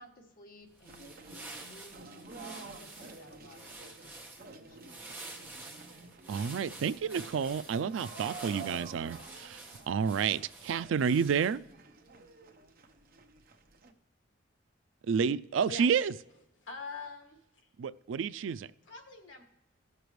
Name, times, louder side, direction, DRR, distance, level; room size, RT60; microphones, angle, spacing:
voice 1, 0.0-5.0, left 1 dB, 50° left, 1.7 m, -57 dB
sound 1, 0.7-11.7, right 2 dB, 10° right, 1.3 m, -49 dB
sound 2, 0.9-13.9, right 4 dB, 50° right, 0.8 m, -50 dB
voice 2, 6.3-9.6 9.9-11.6 15.1-16.1 17.8-18.7, right 6 dB, 80° right, 0.3 m, -30 dB
voice 3, 16.6-17.4 18.9-19.4, left 4 dB, 75° left, 1.7 m, -43 dB
17.0 x 6.7 x 3.1 m
head